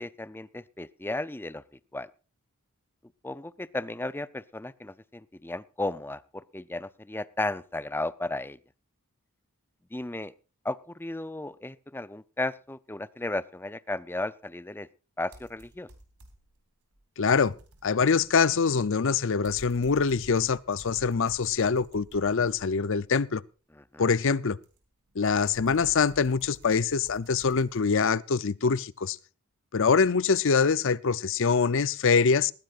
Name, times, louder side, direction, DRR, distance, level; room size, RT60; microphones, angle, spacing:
voice 1, 0.0-1.6 1.9-2.1 3.2-8.6 9.9-10.3 10.6-14.9 15.2-15.9 23.8-24.1, left 2 dB, 10° left, 0.5 m, -34 dB
sound 1, 15.3-16.6 16.9-23.1 24.6-27.9, right 1 dB, 90° right, 3.6 m, -52 dB
voice 2, 17.2-17.5 17.8-23.4 24.0-24.6 25.2-29.2 29.7-32.5, left 5 dB, 60° left, 0.6 m, -24 dB
20.0 x 15.0 x 2.5 m
head